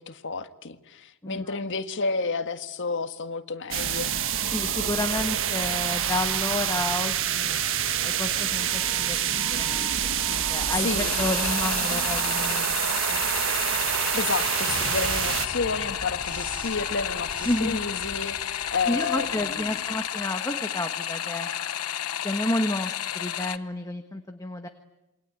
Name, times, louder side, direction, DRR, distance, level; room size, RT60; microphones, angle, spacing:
voice 1, 0.0-4.1 10.8-11.1 14.1-19.8, left 4 dB, 55° left, 9 dB, 1.7 m, -31 dB
voice 2, 1.2-1.6 4.5-7.6 8.0-12.8 13.1-13.2 17.4-17.8 18.9-21.5 22.2-24.7, left 1 dB, 15° left, 6 dB, 1.3 m, -31 dB
sound 1, 3.7-15.5, right 9 dB, 60° right, 1.5 m, -27 dB
sound 2, 7.7-20.1, right 1 dB, 20° right, 6.4 m, -42 dB
sound 3, 11.0-23.6, left 10 dB, 90° left, 1.1 m, -32 dB
28.0 x 23.5 x 9.2 m, 0.94 s
head